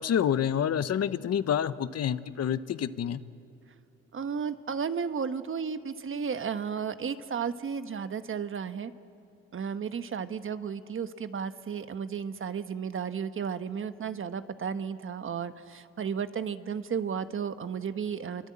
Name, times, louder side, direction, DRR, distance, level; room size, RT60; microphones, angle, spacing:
voice 1, 0.0-3.2, left 9 dB, 55° left, 13 dB, 1.0 m, -28 dB
voice 2, 4.1-8.9 9.5-18.5, right 6 dB, 45° right, 10 dB, 1.2 m, -33 dB
28.0 x 23.5 x 8.7 m, 2.6 s
cardioid pair, 90°, 30 cm